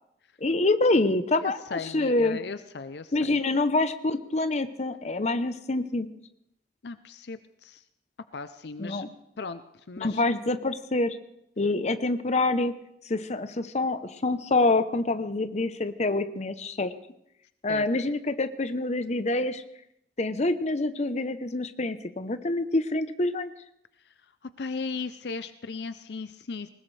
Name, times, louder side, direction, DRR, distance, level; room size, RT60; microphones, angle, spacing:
voice 1, 0.4-2.4 3.1-6.1 8.8-9.1 10.0-11.2 11.6-12.8 13.1-16.9 17.6-19.6 20.2-23.5, left 2 dB, 40° left, 10 dB, 0.8 m, -26 dB
voice 2, 1.4-3.4 6.8-7.8 8.3-9.1 9.4-10.2 17.7-17.8 24.0-24.1 24.4-26.7, left 4 dB, 70° left, 11 dB, 0.6 m, -37 dB
20.5 x 19.5 x 3.3 m, 0.79 s
head